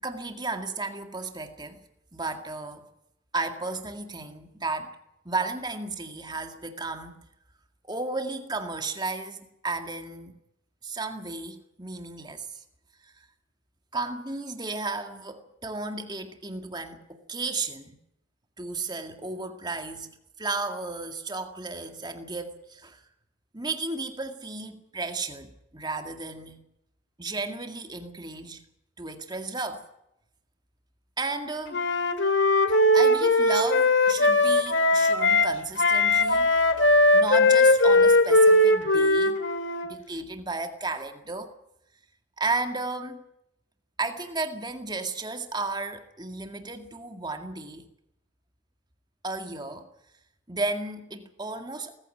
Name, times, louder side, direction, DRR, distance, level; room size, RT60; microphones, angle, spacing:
voice 1, 0.0-1.8 2.1-2.9 3.3-4.9 5.3-7.2 7.9-10.4 10.8-12.6 13.0-13.1 13.9-18.0 18.6-23.0 23.5-26.7 27.2-28.6 29.0-29.8 31.2-31.8 32.7-36.5 37.1-39.4 39.8-41.5 42.4-43.2 44.0-47.9 49.2-49.9 50.5-52.0, right 3 dB, 20° right, 6 dB, 2.0 m, -33 dB
Wind instrument woodwind instrument, 31.7-35.5 35.8-39.9, left 2 dB, 60° left, 2.2 m, -20 dB
19.0 x 15.0 x 9.3 m, 0.82 s
head